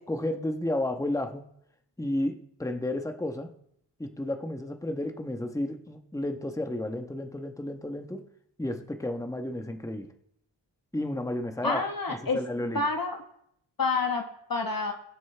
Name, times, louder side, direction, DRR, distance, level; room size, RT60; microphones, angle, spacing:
voice 1, 0.1-1.4 2.0-3.5 4.0-8.3 8.6-10.1 10.9-11.8 12.1-12.8, left 1 dB, 5° left, 6 dB, 1.1 m, -32 dB
voice 2, 11.6-12.4 12.7-13.2 13.8-14.9, left 3 dB, 50° left, 3 dB, 1.4 m, -28 dB
21.5 x 7.6 x 3.4 m, 0.73 s
cardioid pair, 50°, 45 cm